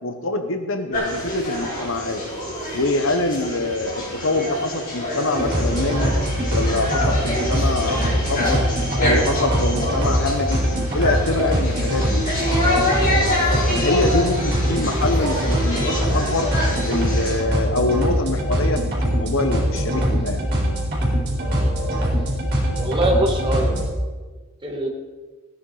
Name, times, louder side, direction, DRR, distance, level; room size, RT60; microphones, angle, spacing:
voice 1, 0.0-2.2 2.7-6.1 6.5-8.6 9.0-10.6 10.9-12.2 12.6-16.5 16.9-20.4, left 2 dB, 60° left, 7 dB, 1.1 m, -25 dB
sound 1, 0.9-17.4, left 1 dB, 40° left, 4.6 m, -26 dB
sound 2, 5.4-23.8, equal, 50° right, 4.2 m, -22 dB
voice 2, 22.8-23.7 24.6-24.9, right 1 dB, 20° right, 1 dB, 2.2 m, -23 dB
16.5 x 9.6 x 4.9 m, 1.4 s
head